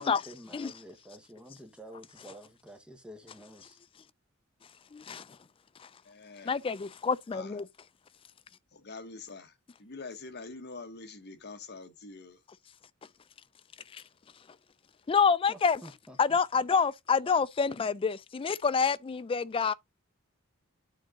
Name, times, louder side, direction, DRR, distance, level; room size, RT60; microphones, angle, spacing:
voice 1, 0.0-3.8 15.5-16.4, equal, 5° right, 1.1 m, -49 dB
voice 2, 4.9-5.3 6.4-7.7 13.9-14.0 15.1-15.8 16.2-19.7, left 5 dB, 25° left, 0.3 m, -27 dB
voice 3, 6.0-6.5 7.3-7.5 8.7-12.4, left 3 dB, 50° left, 1.2 m, -45 dB
9.1 x 3.9 x 3.6 m
head